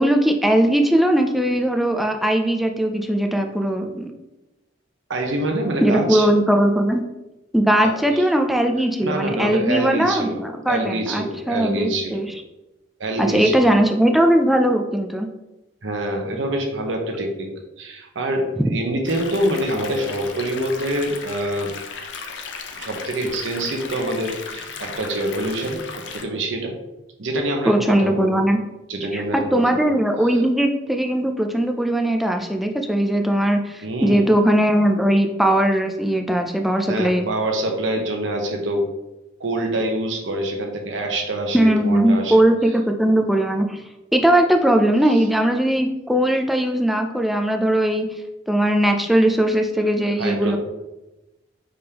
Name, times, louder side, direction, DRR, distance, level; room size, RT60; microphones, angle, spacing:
voice 1, 0.0-4.1 5.8-7.0 7.5-12.3 13.2-15.3 27.7-28.6 29.1-37.2 41.5-43.8 44.1-48.1 48.5-50.6, right 1 dB, ahead, 4 dB, 0.3 m, -19 dB
voice 2, 5.1-6.3 7.8-8.2 9.0-12.1 13.0-13.7 15.8-17.5 17.8-21.7 22.7-26.7 27.2-28.4 28.9-29.6 33.8-34.2 36.9-38.9 39.4-42.3 50.2-50.6, right 1 dB, 80° right, 3 dB, 0.8 m, -25 dB
sound 1, 19.1-26.2, left 5 dB, 70° left, 0.5 m, -36 dB
5.1 x 3.5 x 2.9 m, 0.99 s
head